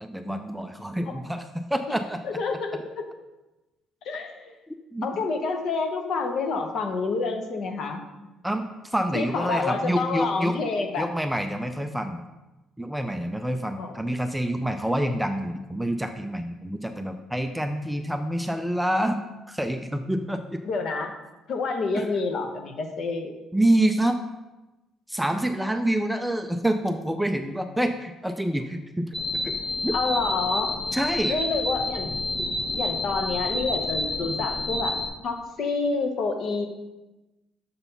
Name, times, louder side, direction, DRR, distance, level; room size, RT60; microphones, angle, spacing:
voice 1, 0.0-2.2 4.9-5.0 8.4-10.7 11.0-12.2 12.8-19.2 19.5-20.6 21.9-22.1 23.5-24.2 25.1-29.1 29.4-29.5 29.8-29.9 30.9-31.4, right 1 dB, 5° right, 6 dB, 0.3 m, -27 dB
voice 2, 2.2-3.0 4.0-4.4 5.0-8.0 9.1-11.1 13.8-13.9 20.6-21.1 21.5-23.3 29.9-30.7 31.3-32.1 32.4-32.5 32.7-35.0 35.2-36.7, left 4 dB, 50° left, 5 dB, 0.8 m, -28 dB
sound 1, 29.1-35.1, left 2 dB, 25° left, 0.8 m, -29 dB
6.9 x 4.0 x 5.5 m, 1.1 s
cardioid pair, 155°, 0 cm